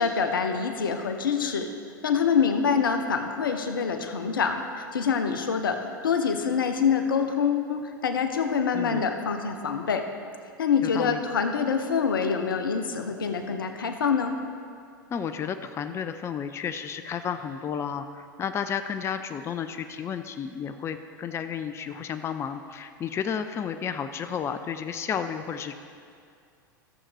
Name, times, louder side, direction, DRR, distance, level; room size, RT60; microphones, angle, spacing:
voice 1, 0.0-1.7 2.0-10.0 10.6-14.4, left 6 dB, 80° left, 7 dB, 0.8 m, -25 dB
voice 2, 10.8-11.2 15.1-25.7, left 7 dB, 25° left, 9 dB, 0.4 m, -32 dB
14.0 x 7.2 x 3.3 m, 2.3 s
hypercardioid pair, 90°, 11 cm